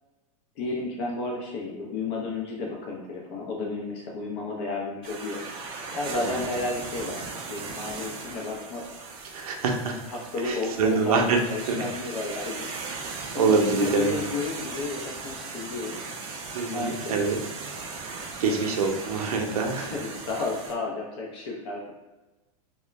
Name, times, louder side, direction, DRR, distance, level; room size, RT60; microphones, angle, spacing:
voice 1, 0.6-5.4 5.9-7.2 7.5-8.9 10.1-11.2 11.5-12.7 13.3-16.0 16.7-17.2 18.0-18.9 19.8-21.9, left 3 dB, 45° left, -1 dB, 0.5 m, -32 dB
sound 1, 5.0-20.7, right 4 dB, 30° right, 0.4 m, -38 dB
voice 2, 9.2-10.0 10.4-11.4 11.7-11.8 12.7-12.8 13.3-14.2 16.5-17.4 18.0-19.9, right 4 dB, 80° right, 2 dB, 0.6 m, -25 dB
2.4 x 2.1 x 3.0 m, 1.1 s
supercardioid pair, 155°, 19 cm